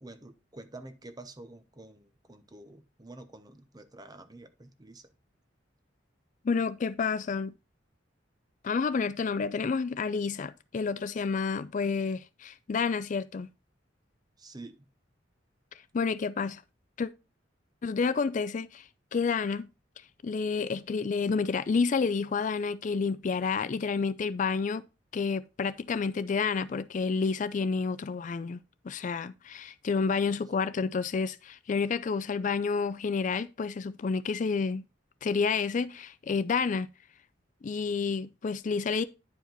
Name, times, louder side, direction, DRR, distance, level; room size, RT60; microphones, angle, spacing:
voice 1, 0.0-5.2 14.4-14.9 30.2-30.5, right 2 dB, 20° right, 0.8 m, -48 dB
voice 2, 6.4-7.5 8.6-13.5 15.9-16.6 17.0-17.1 17.8-19.7 20.2-24.9 25.1-28.6 28.8-34.8 35.2-36.9 37.6-39.0, left 5 dB, 40° left, 0.4 m, -29 dB
10.5 x 5.0 x 3.9 m
head